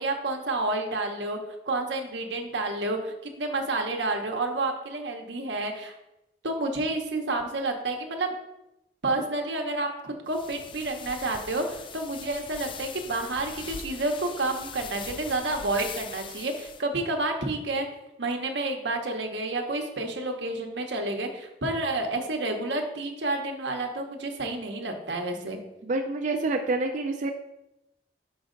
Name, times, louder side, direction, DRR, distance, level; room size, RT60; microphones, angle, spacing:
voice 1, 0.0-1.4 1.6-5.9 6.4-8.3 9.0-17.9 18.2-25.6, right 2 dB, 85° right, 3 dB, 1.0 m, -30 dB
sound 1, 10.3-16.8, left 6 dB, 30° left, 0.3 m, -41 dB
voice 2, 25.8-27.3, right 2 dB, 45° right, 4 dB, 0.4 m, -27 dB
5.6 x 5.3 x 3.8 m, 0.90 s
head